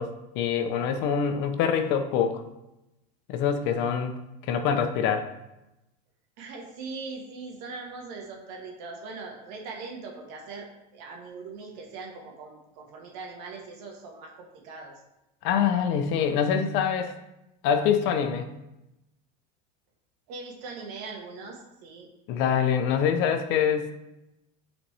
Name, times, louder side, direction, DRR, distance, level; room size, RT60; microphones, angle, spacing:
voice 1, 0.0-2.4 3.3-4.1 4.4-5.3 15.4-17.1 17.6-18.5 22.3-23.9, left 7 dB, 60° left, 7 dB, 0.8 m, -25 dB
voice 2, 6.4-14.9 20.3-22.1, right 4 dB, 75° right, 0 dB, 1.7 m, -41 dB
8.6 x 4.2 x 3.4 m, 0.92 s
supercardioid pair, 120°, 21 cm